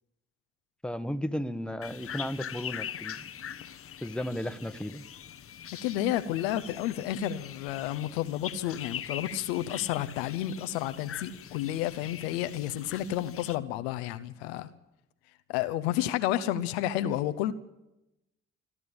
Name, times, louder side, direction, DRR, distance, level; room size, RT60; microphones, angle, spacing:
voice 1, 0.8-3.3 4.0-5.0, equal, 5° left, 11 dB, 1.3 m, -34 dB
sound 1, 1.8-13.6, left 9 dB, 45° left, 1.0 m, -42 dB
voice 2, 5.8-14.7 15.5-17.5, left 12 dB, 75° left, 11 dB, 0.9 m, -31 dB
27.0 x 12.5 x 8.7 m, 0.95 s
figure-of-eight pair, 40°, 32 cm